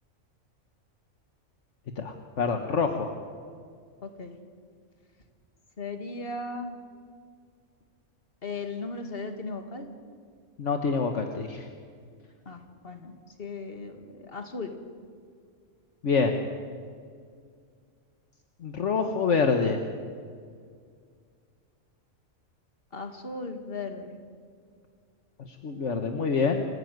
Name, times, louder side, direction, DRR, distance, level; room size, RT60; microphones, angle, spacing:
voice 1, 2.0-3.1 10.6-11.6 16.0-16.4 18.6-19.8 25.6-26.6, left 5 dB, 65° left, 5 dB, 1.6 m, -26 dB
voice 2, 4.0-4.3 5.8-6.8 8.4-9.9 12.5-14.7 22.9-24.1, left 3 dB, 45° left, 5 dB, 2.3 m, -37 dB
27.0 x 15.5 x 9.3 m, 2.1 s
omnidirectional pair, 1.3 m